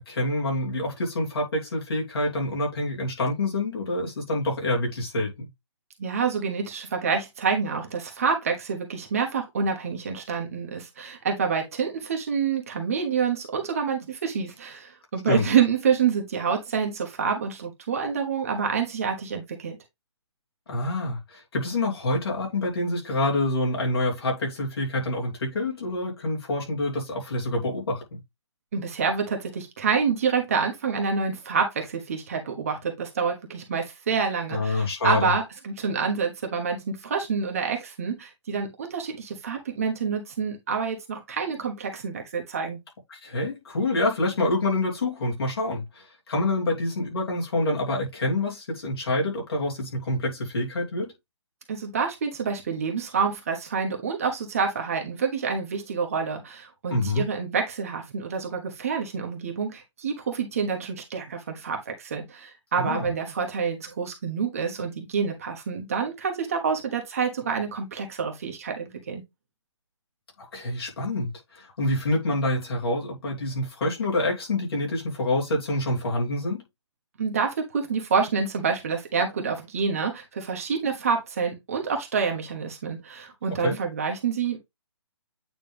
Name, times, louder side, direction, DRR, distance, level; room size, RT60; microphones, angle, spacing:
voice 1, 0.0-5.5 15.3-15.5 20.7-28.2 34.5-35.3 43.1-51.1 56.9-57.3 62.8-63.1 70.4-76.6 83.6-83.8, left 2 dB, 50° left, 2.9 m, -27 dB
voice 2, 6.0-19.8 28.7-42.8 51.7-69.2 77.2-84.6, right 6 dB, 30° right, 1.2 m, -27 dB
8.7 x 3.3 x 3.4 m
hypercardioid pair, 175°, 16 cm